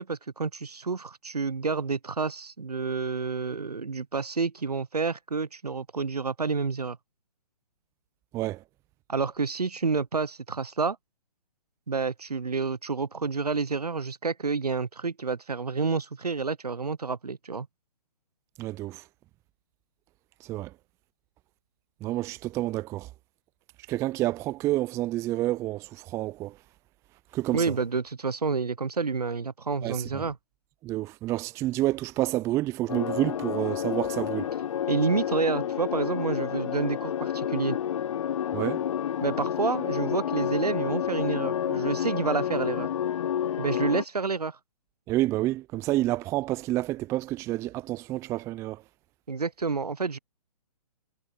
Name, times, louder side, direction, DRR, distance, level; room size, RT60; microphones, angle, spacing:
voice 1, 0.0-7.0 9.1-11.0 11.9-17.7 27.5-30.4 34.9-37.8 39.2-42.9 43.6-44.6 49.3-50.2, right 4 dB, 85° right, 0.9 m, -29 dB
voice 2, 8.3-8.6 18.6-19.0 20.4-20.7 22.0-23.1 23.9-26.6 27.3-27.8 29.8-30.3 30.8-34.5 38.5-38.9 45.1-48.8, right 16 dB, 15° right, 0.5 m, -29 dB
sound 1, 32.9-44.0, left 9 dB, 55° left, 0.6 m, -30 dB
figure-of-eight pair, 130°, 20 cm